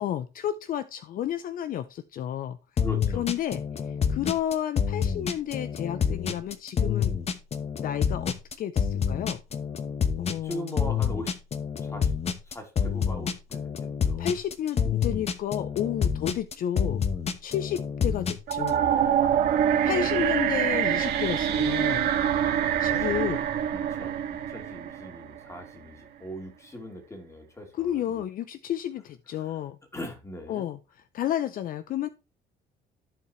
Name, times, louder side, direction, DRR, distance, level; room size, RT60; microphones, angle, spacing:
voice 1, 0.0-2.6 3.1-7.2 7.8-9.4 10.2-10.8 14.2-17.0 17.4-18.9 19.8-22.1 22.8-23.4 27.7-29.8 30.5-30.8 31.1-32.1, left 10 dB, 55° left, 13 dB, 0.6 m, -31 dB
sound 1, 2.8-18.7, left 7 dB, 40° left, 1.0 m, -27 dB
voice 2, 2.8-3.2 10.4-11.4 11.8-12.1 12.4-14.2 19.7-19.8 22.9-23.2 23.7-28.2 29.4-29.6 29.9-30.7, left 1 dB, 15° left, 4 dB, 2.8 m, -40 dB
sound 2, 18.5-25.6, right 9 dB, 70° right, 1.8 m, -25 dB
14.0 x 4.7 x 3.1 m, 0.29 s
cardioid pair, 110°, 17 cm